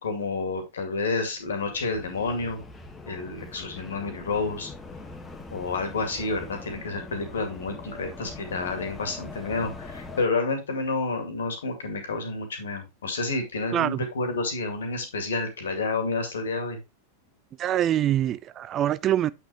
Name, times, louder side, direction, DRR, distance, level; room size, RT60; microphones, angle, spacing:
voice 1, 0.0-2.6 3.1-4.7 5.5-16.8, left 3 dB, 65° left, 2.2 m, -29 dB
sound 1, 1.4-10.2, left 3 dB, 15° left, 1.3 m, -42 dB
voice 2, 13.7-14.1 17.6-19.3, right 11 dB, 30° right, 0.4 m, -24 dB
8.1 x 5.9 x 3.1 m
figure-of-eight pair, 90°, 0 cm